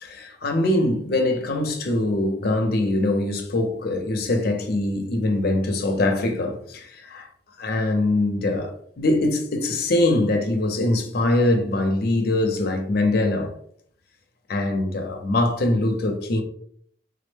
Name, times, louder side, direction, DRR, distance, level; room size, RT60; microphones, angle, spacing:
voice 1, 0.0-7.3 7.6-13.5 14.5-16.4, left 2 dB, 55° left, 0.6 m, -23 dB
3.6 x 2.1 x 3.2 m
head